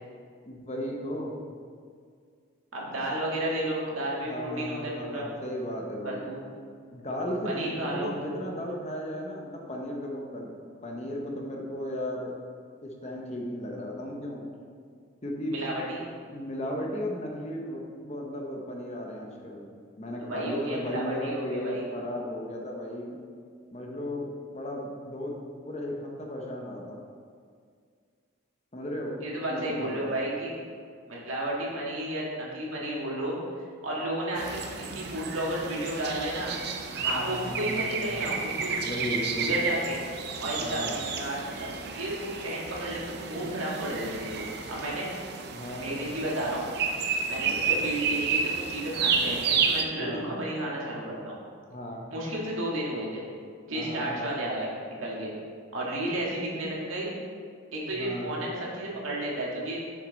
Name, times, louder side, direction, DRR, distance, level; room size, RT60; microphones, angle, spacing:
voice 1, 0.4-1.3 4.2-6.3 6.9-10.5 10.8-12.3 12.8-14.5 15.2-15.6 16.3-19.6 20.0-23.2 23.7-25.4 25.6-27.0 28.7-29.2 29.5-30.2 37.0-38.3 38.8-39.5 40.6-41.0 45.5-45.9 47.4-47.7 50.0-50.2 51.7-52.0 53.7-54.2 57.9-58.3, left 1 dB, 30° left, -1 dB, 0.9 m, -35 dB
voice 2, 2.7-5.3 6.0-6.4 7.4-8.1 15.5-16.0 20.2-21.9 29.2-30.5 31.1-33.4 33.8-34.7 34.9-36.6 36.9-38.8 39.4-40.0 40.4-45.1 45.8-46.7 47.3-51.4 52.1-53.2 53.7-55.3 55.7-57.1 57.7-59.8, right 1 dB, 80° right, -4 dB, 1.8 m, -32 dB
birdsong in moss valley, 34.4-49.8, right 5 dB, 50° right, 0.5 m, -31 dB
6.6 x 6.5 x 4.0 m, 2.1 s
head